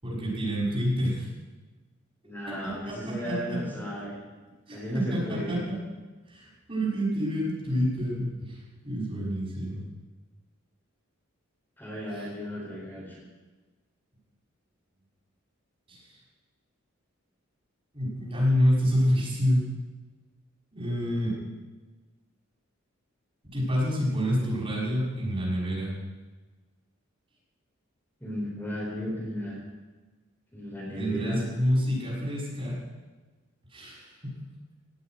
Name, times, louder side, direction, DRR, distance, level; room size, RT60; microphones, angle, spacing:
voice 1, 0.0-1.3 2.6-3.6 4.7-5.8 6.3-9.8 12.1-12.2 15.9-16.0 17.9-19.7 20.7-21.4 23.5-25.9 31.0-32.8 33.7-34.1, equal, 25° right, -4 dB, 6.1 m, -28 dB
voice 2, 2.2-4.2 4.7-5.6 11.8-13.2 28.2-29.6 30.5-31.4, equal, 10° left, -5 dB, 4.3 m, -34 dB
17.5 x 8.1 x 9.4 m, 1.3 s
head